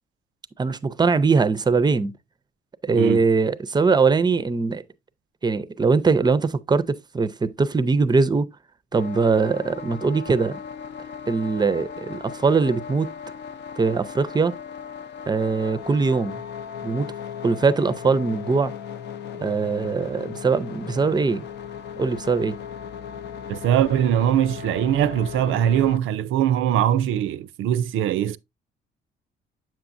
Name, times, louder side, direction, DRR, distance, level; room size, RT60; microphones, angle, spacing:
voice 1, 0.6-2.1 2.8-4.8 5.4-8.5 8.9-10.6 11.3-13.1 13.8-14.5 15.3-16.4 16.8-17.1 17.4-18.7 19.3-21.4 22.0-22.6, right 4 dB, 20° right, 0.5 m, -21 dB
voice 2, 2.9-3.2 23.5-28.4, right 10 dB, 80° right, 0.5 m, -21 dB
sound 1, 8.9-26.0, left 8 dB, 60° left, 0.6 m, -37 dB
7.6 x 6.0 x 2.5 m
cardioid pair, 90°, 20 cm